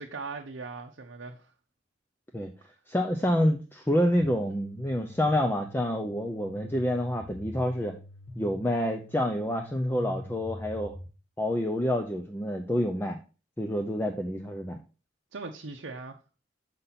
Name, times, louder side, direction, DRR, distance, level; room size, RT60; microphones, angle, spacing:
voice 1, 0.0-1.5 15.3-16.2, right 4 dB, 70° right, 0.7 m, -39 dB
voice 2, 2.9-7.9 8.4-10.9 11.4-13.2 13.6-14.8, left 1 dB, 10° left, 0.5 m, -28 dB
sound 1, 4.2-11.1, left 1 dB, 30° left, 1.1 m, -43 dB
6.7 x 5.8 x 4.0 m
head